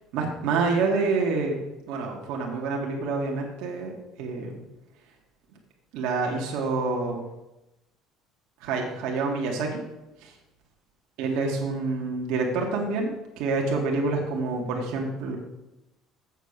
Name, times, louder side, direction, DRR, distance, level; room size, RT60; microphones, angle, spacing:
voice 1, 0.1-1.6 1.9-3.9 4.2-4.6 5.9-7.2 8.6-9.8 11.2-15.4, right 3 dB, 75° right, 0 dB, 2.0 m, -27 dB
8.0 x 6.9 x 6.7 m, 0.96 s
cardioid pair, 135°, 0 cm